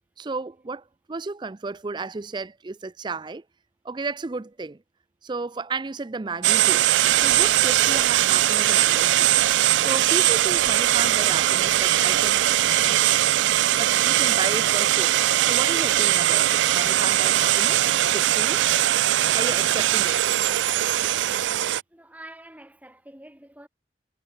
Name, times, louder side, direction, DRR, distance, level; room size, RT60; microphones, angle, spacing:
voice 1, 0.2-3.4 3.8-4.8 5.2-6.9 7.2-12.4 12.8-13.0 13.8-18.6 19.3-20.3, right 3 dB, 25° right, 0.4 m, -33 dB
sound 1, 6.4-21.8, right 13 dB, 90° right, 0.4 m, -20 dB
voice 2, 21.9-23.7, right 1 dB, 10° right, 1.9 m, -46 dB
head